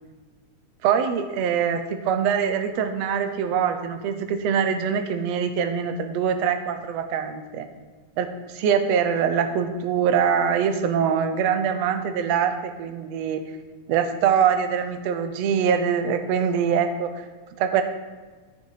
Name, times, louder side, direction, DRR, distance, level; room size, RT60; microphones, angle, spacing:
voice 1, 0.8-7.7 8.2-13.4 13.9-17.2 17.6-17.8, right 7 dB, 70° right, 8 dB, 1.6 m, -23 dB
13.5 x 6.8 x 4.8 m, 1.4 s
omnidirectional pair, 3.7 m